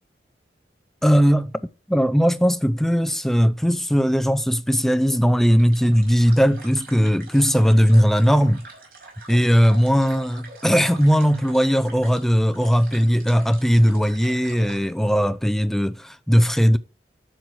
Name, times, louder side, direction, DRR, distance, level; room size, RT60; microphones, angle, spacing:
voice 1, 1.0-1.5 1.9-8.6 9.3-16.8, equal, ahead, 0.6 m, -18 dB
sound 1, 5.6-14.9, right 3 dB, 60° right, 5.5 m, -44 dB
12.0 x 7.8 x 4.7 m
head